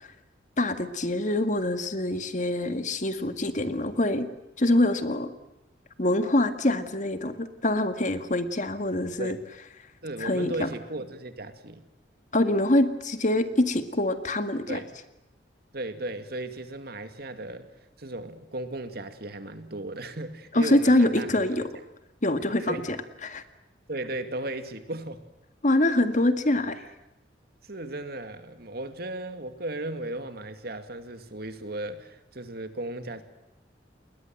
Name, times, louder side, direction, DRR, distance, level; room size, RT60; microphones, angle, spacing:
voice 1, 0.6-4.3 4.6-5.3 6.0-9.4 10.2-10.7 12.3-14.8 20.5-21.7 22.2-23.0 23.2-23.4 25.6-26.8, left 1 dB, 45° left, 9 dB, 1.9 m, -25 dB
voice 2, 10.0-11.8 14.7-14.9 15.7-17.7 18.0-21.7 22.6-22.9 23.9-25.2 27.6-33.2, right 2 dB, 60° right, 9 dB, 2.4 m, -36 dB
29.5 x 21.0 x 7.8 m, 0.92 s
head